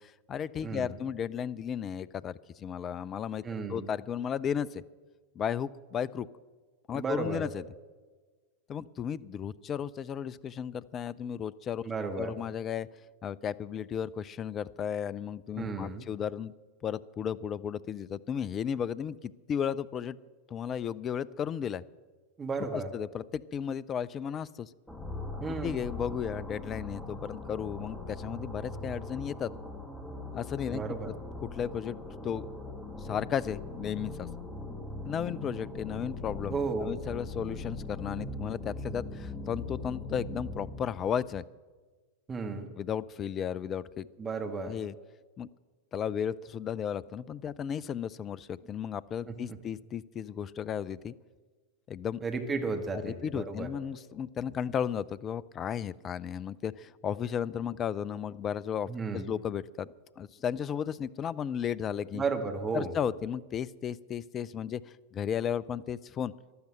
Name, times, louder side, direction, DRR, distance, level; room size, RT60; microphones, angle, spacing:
voice 1, 0.0-3.4 3.7-4.8 5.4-6.3 6.9-7.6 8.7-11.9 12.2-12.9 13.2-16.5 16.8-20.2 20.5-21.8 22.7-24.7 25.6-29.5 30.3-30.8 31.4-32.0 32.2-32.5 33.0-34.3 35.0-41.4 42.8-44.1 44.7-44.9 45.4-45.5 45.9-51.1 51.9-52.2 53.0-59.9 60.2-62.2 62.7-66.3, left 8 dB, 25° left, 19 dB, 0.4 m, -34 dB
voice 2, 0.6-1.0 3.4-3.9 6.9-7.4 11.8-12.4 15.6-16.0 22.4-22.9 25.4-25.8 30.7-31.1 36.5-36.9 42.3-42.7 44.2-44.7 49.3-49.6 52.2-53.7 58.9-59.3 62.1-62.9, right 4 dB, 20° right, 5 dB, 1.7 m, -34 dB
sound 1, 24.9-41.1, left 2 dB, 5° left, 2.3 m, -40 dB
13.5 x 12.0 x 7.8 m, 1.4 s
figure-of-eight pair, 90°, 0 cm